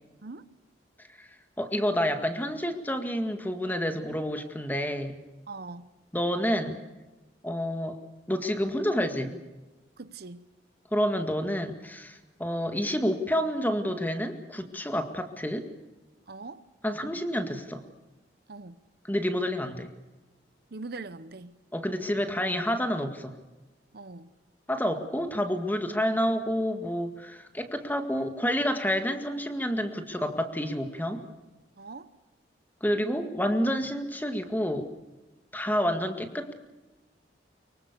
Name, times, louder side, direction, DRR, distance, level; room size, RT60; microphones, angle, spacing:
voice 1, 1.6-5.1 6.1-6.8 7.4-8.0 8.3-9.4 10.9-15.6 16.8-17.8 19.0-19.9 21.7-23.3 24.7-31.2 32.8-34.9 35.5-36.5, equal, 10° left, 1.9 m, -29 dB
voice 2, 5.5-5.9 10.0-10.4 16.3-16.6 18.5-18.8 20.7-21.5 23.9-24.3 31.8-32.1, right 3 dB, 60° right, 0.9 m, -41 dB
24.5 x 23.5 x 6.9 m
head